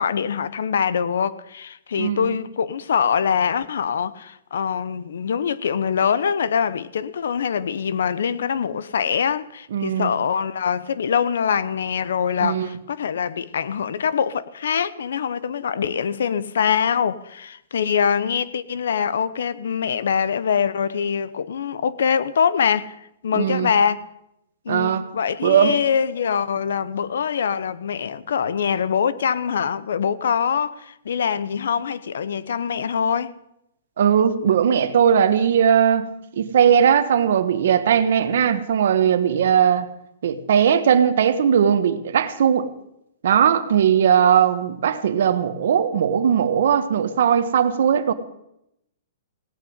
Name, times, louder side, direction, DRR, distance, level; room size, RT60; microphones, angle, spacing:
voice 1, 0.0-23.0 23.2-24.0 24.6-33.4, left 7 dB, 80° left, 0.9 m, -23 dB
voice 2, 2.0-2.4 9.7-10.1 12.4-12.7 23.3-23.7 24.7-25.0 25.4-25.8 34.0-39.9 40.2-42.7 43.2-48.1, right 8 dB, 65° right, 1.3 m, -19 dB
17.5 x 6.5 x 9.5 m
hypercardioid pair, 165°, 0 cm